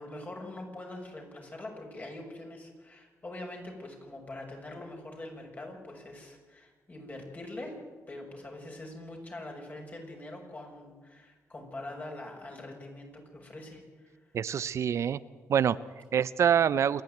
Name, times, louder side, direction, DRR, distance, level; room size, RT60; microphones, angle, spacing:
voice 1, 0.0-7.8 8.1-14.2, left 1 dB, 30° left, 1 dB, 6.5 m, -43 dB
voice 2, 14.3-15.2 15.5-17.0, right 8 dB, 65° right, 17 dB, 0.6 m, -26 dB
27.5 x 10.5 x 9.2 m, 1.4 s
cardioid pair, 80°, 5 cm